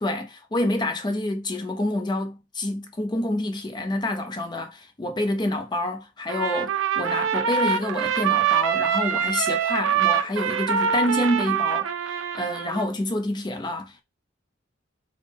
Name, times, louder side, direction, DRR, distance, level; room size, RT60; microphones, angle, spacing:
voice 1, 0.0-14.0, left 1 dB, 25° left, 0.5 m, -27 dB
Trumpet, 6.3-12.9, right 8 dB, 75° right, 0.4 m, -24 dB
3.5 x 2.0 x 3.4 m
head